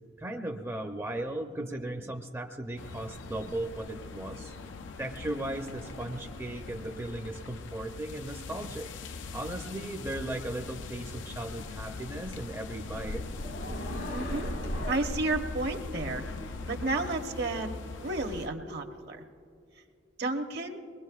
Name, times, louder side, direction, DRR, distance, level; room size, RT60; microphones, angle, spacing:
voice 1, 0.2-4.5 5.0-8.9 9.3-13.3, right 1 dB, 15° right, 3 dB, 0.5 m, -37 dB
sound 1, 2.8-18.5, left 3 dB, 90° left, 0.5 m, -41 dB
sound 2, 12.8-17.8, equal, 70° left, 1.4 m, -38 dB
voice 2, 14.1-14.5 14.9-16.2 16.7-17.7 18.0-19.2 20.2-20.8, right 2 dB, 65° right, 4 dB, 1.0 m, -32 dB
23.0 x 20.5 x 2.4 m, 2.4 s
head